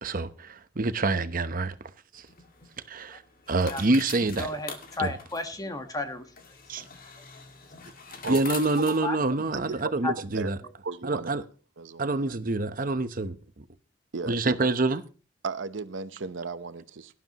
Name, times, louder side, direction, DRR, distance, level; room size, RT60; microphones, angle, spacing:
voice 1, 0.0-1.7 2.1-2.3 2.9-3.2 3.5-4.5 5.0-5.1 6.7-6.8 8.3-10.6 11.0-11.4 12.0-13.6 14.2-15.0, right 2 dB, 50° right, 0.9 m, -27 dB
sound 1, 2.1-9.8, left 5 dB, 50° left, 2.2 m, -44 dB
voice 2, 4.2-6.3 7.2-7.3 9.0-9.7 10.0-10.1, left 2 dB, 20° left, 1.5 m, -33 dB
voice 3, 9.5-9.9 10.3-10.5 10.8-11.4 11.8-12.0 14.1-14.4 15.4-17.1, right 4 dB, 80° right, 0.9 m, -35 dB
18.0 x 11.5 x 3.0 m
head